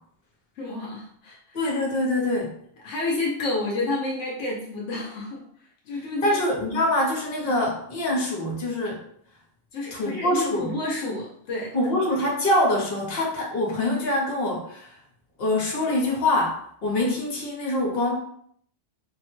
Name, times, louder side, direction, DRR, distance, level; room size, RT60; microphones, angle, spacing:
voice 1, 0.6-1.4 2.8-5.4 5.9-6.4 7.5-7.6 9.7-11.7, left 2 dB, 80° left, -2 dB, 1.0 m, -29 dB
voice 2, 1.5-2.5 5.9-9.0 9.9-10.7 11.7-15.0 15.4-18.2, left 1 dB, 60° left, -1 dB, 1.1 m, -25 dB
3.5 x 2.1 x 3.1 m, 0.65 s
omnidirectional pair, 1.2 m